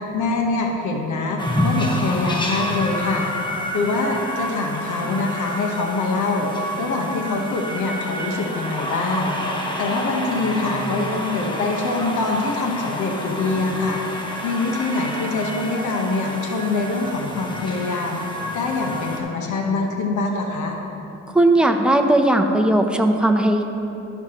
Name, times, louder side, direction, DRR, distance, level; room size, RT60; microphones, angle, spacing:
voice 1, 0.0-3.3 3.7-6.5 6.8-9.4 9.8-14.0 14.4-18.2 18.5-20.8, left 3 dB, 75° left, 1 dB, 1.2 m, -24 dB
sound 1, 1.4-19.2, equal, 15° left, 1.1 m, -29 dB
voice 2, 21.3-23.6, right 1 dB, 5° right, 4 dB, 0.7 m, -17 dB
14.5 x 5.8 x 3.0 m, 2.9 s
cardioid pair, 90°, 30 cm